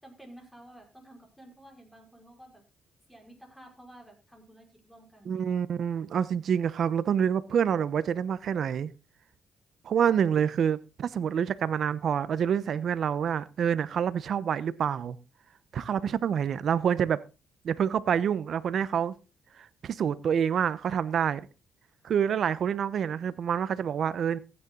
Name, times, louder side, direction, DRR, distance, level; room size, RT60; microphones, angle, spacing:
voice 1, 0.0-2.6 3.1-5.6, right 1 dB, 5° left, 5.6 m, -52 dB
voice 2, 5.3-8.9 9.8-15.2 15.7-17.2 17.6-19.1 19.8-21.5 22.0-24.4, right 8 dB, 60° right, 0.9 m, -27 dB
15.0 x 9.7 x 4.0 m
cardioid pair, 90°, 0 cm